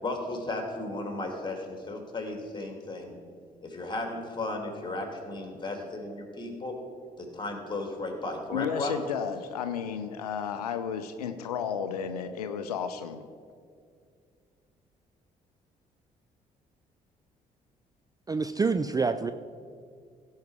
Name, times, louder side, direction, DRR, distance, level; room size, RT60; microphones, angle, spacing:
voice 1, 0.0-3.2 3.6-6.7 7.2-8.9, left 2 dB, 25° left, 3 dB, 2.7 m, -35 dB
voice 2, 8.5-13.2, left 7 dB, 85° left, 9 dB, 0.4 m, -33 dB
voice 3, 18.3-19.3, right 4 dB, 20° right, 10 dB, 0.4 m, -27 dB
16.5 x 5.5 x 4.8 m, 2.2 s
hypercardioid pair, 45°, 19 cm